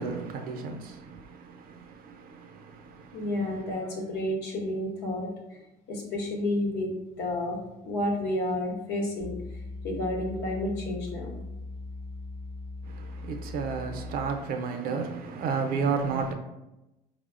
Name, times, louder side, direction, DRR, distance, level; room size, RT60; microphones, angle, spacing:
voice 1, 0.0-3.6 12.8-16.3, right 5 dB, 60° right, 0.5 m, -33 dB
voice 2, 3.1-5.3 5.9-7.6 7.8-9.4 9.8-11.3, left 1 dB, 75° left, 0.9 m, -30 dB
sound 1, 9.2-14.5, left 2 dB, 35° left, 0.4 m, -40 dB
4.8 x 2.0 x 2.4 m
cardioid pair, 110°, 17 cm